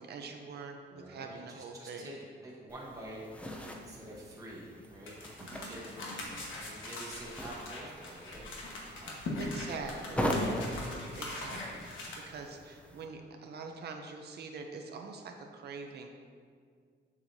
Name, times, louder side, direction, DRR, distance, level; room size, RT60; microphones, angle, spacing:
voice 1, 0.0-2.1 5.4-5.8 9.4-10.3 11.1-16.1, right 4 dB, 60° right, 3 dB, 0.5 m, -44 dB
voice 2, 0.9-2.1 2.4-10.1, right 1 dB, 15° right, -5 dB, 1.0 m, -48 dB
sound 1, 2.7-13.1, equal, 5° left, 0.5 m, -40 dB
sound 2, 5.1-12.1, left 2 dB, 90° left, 1.3 m, -41 dB
sound 3, 7.1-7.5 7.7-7.8 8.3-8.6 9.7-10.1 10.4-11.1 11.6-11.8 12.3-12.5, left 1 dB, 25° left, 1.8 m, -53 dB
7.3 x 6.7 x 2.7 m, 2.1 s
cardioid pair, 155°, 20 cm